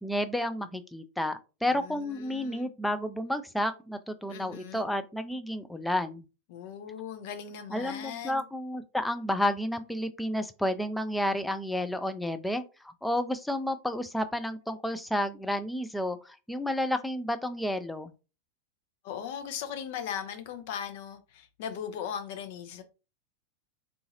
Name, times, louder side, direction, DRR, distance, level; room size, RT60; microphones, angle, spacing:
voice 1, 0.0-6.2 7.7-18.1, left 1 dB, 5° left, 0.4 m, -31 dB
voice 2, 1.7-2.7 4.3-4.9 6.5-8.4 19.0-22.8, left 8 dB, 50° left, 0.6 m, -38 dB
3.8 x 2.4 x 2.8 m
figure-of-eight pair, 90°, 0 cm